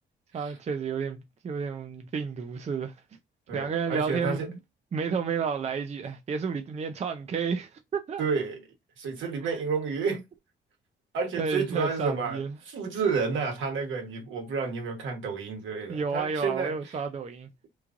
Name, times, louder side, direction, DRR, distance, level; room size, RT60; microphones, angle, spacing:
voice 1, 0.3-2.9 3.5-4.6 4.9-8.2 9.4-9.5 11.4-12.5 15.9-17.5, right 5 dB, 35° right, 0.5 m, -31 dB
voice 2, 3.5-4.5 8.2-8.6 9.0-10.2 11.1-16.7, right 5 dB, 75° right, 1.3 m, -30 dB
3.1 x 2.4 x 3.6 m
cardioid pair, 90°, 20 cm